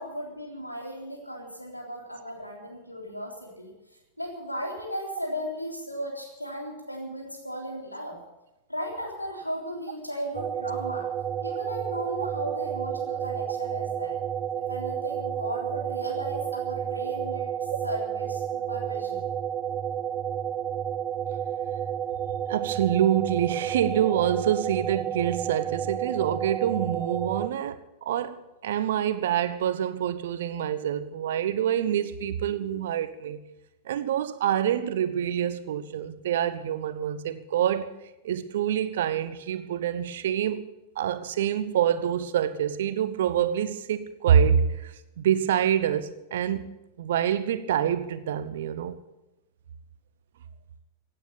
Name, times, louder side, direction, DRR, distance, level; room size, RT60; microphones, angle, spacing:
voice 1, 0.0-3.7 4.2-8.2 8.7-11.1 11.4-14.2 14.6-17.5 17.8-19.2, equal, 85° left, 3.6 m, -36 dB
sound 1, 10.3-27.5, right 9 dB, 30° right, 0.6 m, -31 dB
voice 2, 22.5-33.4 33.9-37.9 38.2-40.6 41.0-46.6 47.0-49.0, right 9 dB, 60° right, 1.0 m, -26 dB
16.5 x 9.0 x 8.7 m
figure-of-eight pair, 90°, 0 cm